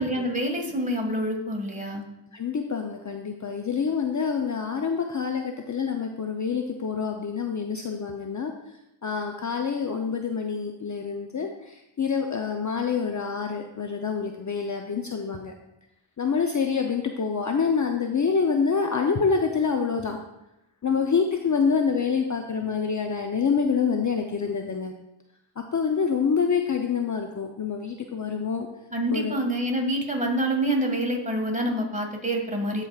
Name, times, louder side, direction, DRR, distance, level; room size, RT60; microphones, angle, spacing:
voice 1, 0.0-2.0 28.9-32.9, right 1 dB, 15° right, 1 dB, 1.7 m, -27 dB
voice 2, 2.3-8.5 9.0-15.5 16.2-20.2 20.8-24.9 25.6-28.7 29.1-29.4, left 5 dB, 40° left, 4 dB, 0.6 m, -26 dB
14.0 x 4.9 x 2.4 m, 0.89 s
cardioid pair, 60°, 48 cm